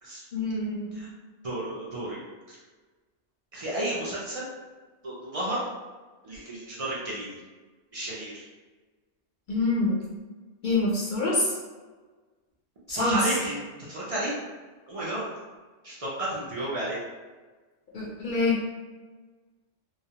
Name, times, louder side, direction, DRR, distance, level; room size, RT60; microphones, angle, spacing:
voice 1, 0.3-1.1 9.5-10.0 10.6-11.5 12.9-13.2 17.9-18.7, left 2 dB, 60° left, -5 dB, 0.5 m, -26 dB
voice 2, 1.4-2.2 2.5-2.6 3.5-4.5 5.0-5.6 6.2-7.4 7.9-8.4 12.9-13.6 13.9-14.3 14.9-15.3 15.8-17.0, right 1 dB, 55° right, -7 dB, 0.4 m, -32 dB
2.3 x 2.1 x 2.7 m, 1.3 s
omnidirectional pair, 1.2 m